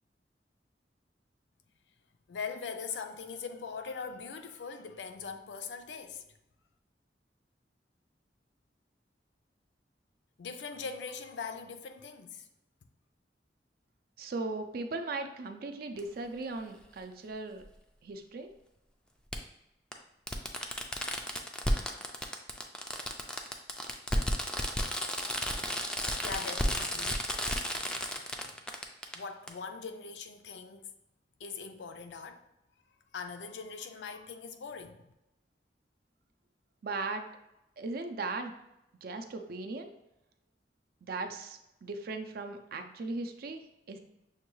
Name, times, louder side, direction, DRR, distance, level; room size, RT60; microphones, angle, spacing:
voice 1, 2.3-6.2 10.4-12.5 25.3-27.3 27.9-28.6 29.1-30.9 31.4-32.4 33.1-35.0, left 5 dB, 75° left, 0.4 m, -42 dB
voice 2, 14.2-17.6 18.0-18.5 36.8-37.2 37.8-38.5 39.0-39.9 41.0-43.6 43.9-44.0, right 3 dB, 60° right, 0.4 m, -38 dB
Fireworks, 16.0-16.1 17.6-17.7 19.3-19.4 19.9-20.0 20.3-29.2 29.5-29.6, equal, 5° left, 0.3 m, -33 dB
6.4 x 2.3 x 3.0 m
head